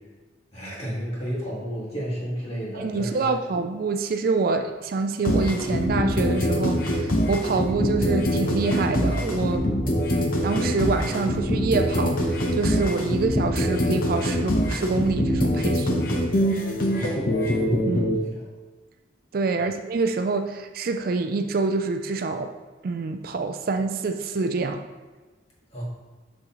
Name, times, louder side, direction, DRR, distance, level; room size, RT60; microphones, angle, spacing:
voice 1, 0.5-3.6 9.8-10.1 16.9-17.4 18.4-18.5 19.6-19.7 25.7-25.8, equal, 35° left, -5 dB, 1.9 m, -32 dB
voice 2, 2.7-9.7 10.4-16.0 17.9-18.2 19.3-22.5 22.8-24.9, right 3 dB, 50° right, 7 dB, 0.3 m, -26 dB
sound 1, 5.2-18.2, equal, 50° left, 0.8 m, -24 dB
6.3 x 6.2 x 3.0 m, 1.3 s
head